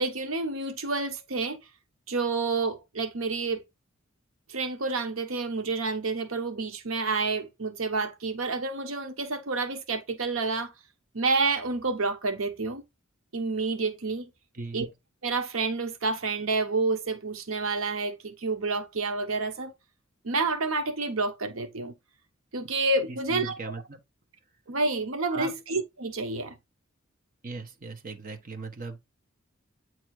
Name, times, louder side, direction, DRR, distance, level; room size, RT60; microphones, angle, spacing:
voice 1, 0.0-1.6 2.1-3.6 4.5-10.7 11.1-12.8 13.3-14.3 14.7-14.9 15.2-19.7 20.2-21.9 22.5-23.6 24.7-26.5, right 3 dB, 80° right, 1.0 m, -29 dB
voice 2, 14.5-14.9 23.3-24.0 25.3-25.5 27.4-29.0, right 3 dB, 40° right, 1.2 m, -38 dB
8.9 x 3.1 x 4.7 m
head